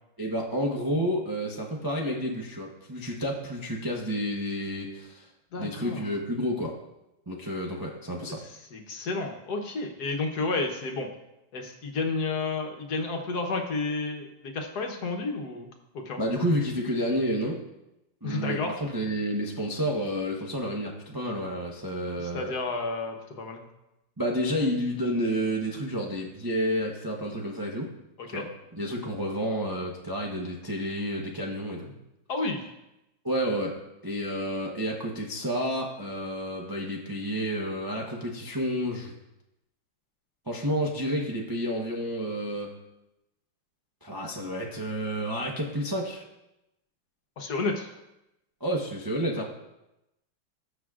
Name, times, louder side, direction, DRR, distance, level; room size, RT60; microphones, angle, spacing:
voice 1, 0.2-5.3 5.6-6.7 7.3-8.4 16.2-17.6 18.2-22.5 24.2-27.9 28.3-32.0 33.2-33.8 34.0-39.1 40.5-42.7 44.0-46.2 48.6-49.5, equal, 30° right, -1 dB, 0.4 m, -30 dB
voice 2, 5.5-6.0 8.7-11.1 11.5-15.7 15.9-16.2 18.2-18.7 22.2-23.6 28.2-28.5 32.3-32.6 47.4-47.9, left 3 dB, 60° left, 3 dB, 1.4 m, -31 dB
18.5 x 6.2 x 2.4 m, 0.92 s
omnidirectional pair, 2.1 m